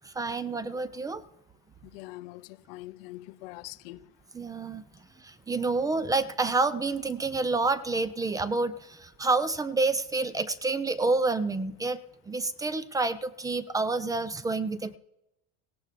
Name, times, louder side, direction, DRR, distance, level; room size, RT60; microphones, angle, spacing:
voice 1, 0.2-1.2 4.3-4.8 5.2-12.0 12.3-15.0, right 3 dB, 10° right, 0.4 m, -28 dB
voice 2, 1.8-4.1, left 18 dB, 80° left, 0.6 m, -43 dB
17.5 x 17.0 x 3.3 m
cardioid pair, 135°, 29 cm